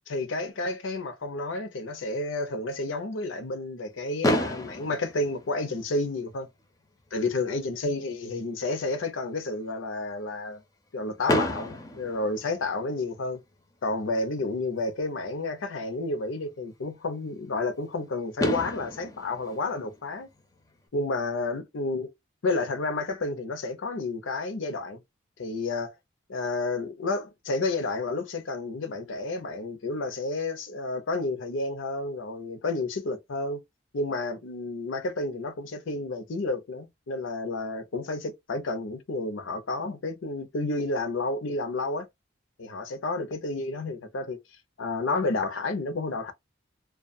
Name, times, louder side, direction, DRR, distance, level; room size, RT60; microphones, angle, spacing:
voice 1, 0.1-6.5 7.1-10.6 10.9-13.4 13.8-20.3 20.9-22.1 22.4-25.0 25.4-25.9 26.3-33.6 33.9-42.1 42.6-44.4 44.8-46.3, left 2 dB, 90° left, 0.6 m, -31 dB
Fireworks, 4.2-6.3 7.1-7.2 7.4-7.6 7.9-8.0 11.3-13.1 14.8-14.9 17.9-18.0 18.4-20.7, left 1 dB, 20° left, 0.4 m, -30 dB
2.3 x 2.3 x 2.5 m
head